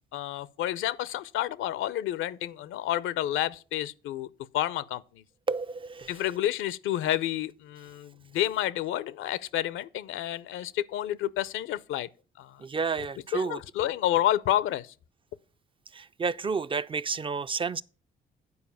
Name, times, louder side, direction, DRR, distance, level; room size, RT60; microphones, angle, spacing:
voice 1, 0.1-4.3 4.5-5.2 6.1-12.1 12.4-12.6 13.3-14.9, left 13 dB, 85° left, 0.6 m, -30 dB
voice 2, 5.5-6.1 12.6-13.6 16.0-17.8, right 5 dB, 25° right, 0.3 m, -30 dB
9.5 x 4.7 x 7.0 m
cardioid pair, 90°, 20 cm